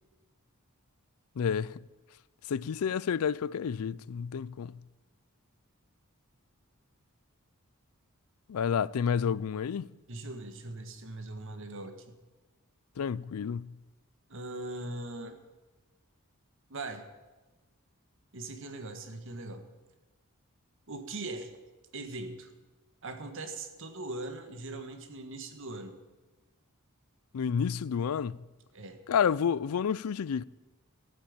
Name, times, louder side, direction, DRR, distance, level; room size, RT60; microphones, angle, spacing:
voice 1, 1.4-1.8 2.5-4.8 8.5-9.9 13.0-13.7 27.3-28.4 29.1-30.4, left 7 dB, 80° left, 0.4 m, -30 dB
voice 2, 10.1-12.2 14.3-15.4 16.7-17.0 18.3-19.6 20.9-21.5 21.9-22.5 23.0-26.0 28.7-29.0, right 2 dB, 60° right, 1.5 m, -40 dB
13.5 x 8.9 x 8.8 m
head